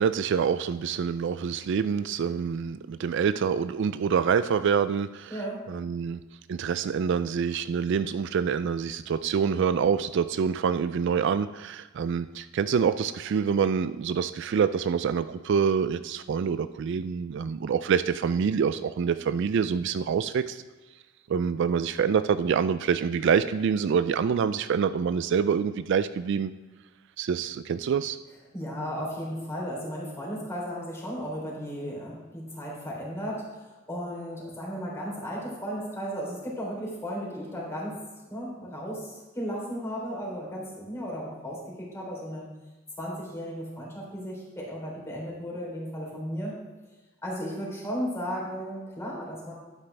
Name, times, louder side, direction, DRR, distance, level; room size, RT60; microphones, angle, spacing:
voice 1, 0.0-5.4 5.7-6.2 6.5-20.6 21.3-26.5 27.2-28.2, right 6 dB, 60° right, 12 dB, 0.3 m, -26 dB
voice 2, 5.3-5.6 28.5-38.0 38.3-42.5 43.0-46.6 47.2-49.5, equal, 15° left, -4 dB, 3.4 m, -35 dB
11.5 x 9.3 x 3.3 m, 1.2 s
head